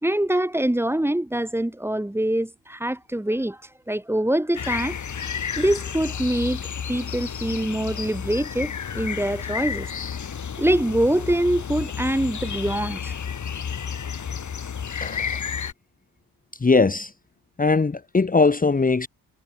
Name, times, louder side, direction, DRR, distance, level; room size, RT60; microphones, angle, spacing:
voice 1, 0.0-3.6 3.9-5.0 5.6-9.9 10.6-13.1, right 1 dB, 5° right, 2.5 m, -24 dB
sound 1, 4.5-15.7, left 7 dB, 50° left, 4.9 m, -31 dB
voice 2, 15.0-15.4 16.6-17.1 17.6-19.1, left 4 dB, 20° left, 1.7 m, -20 dB
cardioid pair, 115°, 39 cm